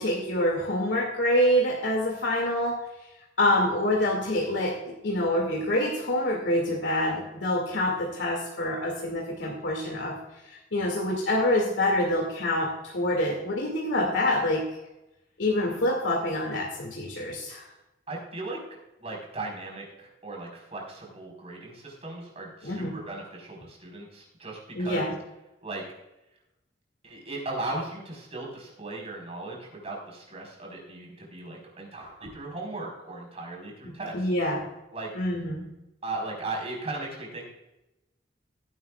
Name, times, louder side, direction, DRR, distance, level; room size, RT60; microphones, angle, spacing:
voice 1, 0.0-2.8 3.4-4.7 5.0-10.1 10.7-14.7 15.4-17.6 22.6-23.0 24.7-25.1 34.1-34.7 35.1-35.6, left 1 dB, 90° left, -1 dB, 2.3 m, -26 dB
voice 2, 18.1-18.6 19.0-25.1 25.6-25.8 27.0-34.3 34.9-35.1 36.0-37.5, right 2 dB, 35° right, -1 dB, 4.4 m, -37 dB
17.0 x 11.0 x 2.4 m, 0.95 s
head